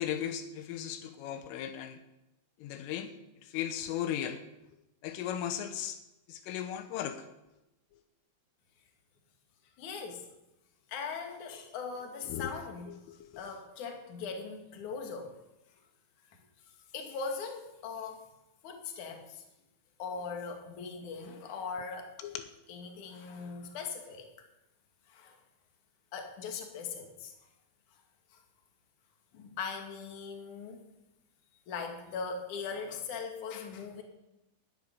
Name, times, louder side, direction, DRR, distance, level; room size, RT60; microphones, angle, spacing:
voice 1, 0.0-2.0 2.6-3.1 3.4-4.4 5.0-6.0 6.3-7.2 12.3-12.5 12.9-13.3 22.2-22.5, left 10 dB, 80° left, 9 dB, 3.5 m, -36 dB
voice 2, 9.8-10.3 10.9-13.0 13.4-15.3 16.9-18.3 18.6-19.4 20.0-22.1 22.7-24.3 25.1-25.4 26.1-27.3 28.3-28.4 29.3-30.8 31.7-34.0, left 5 dB, 45° left, 3 dB, 3.1 m, -40 dB
13.0 x 11.0 x 9.9 m, 0.93 s
omnidirectional pair, 5.7 m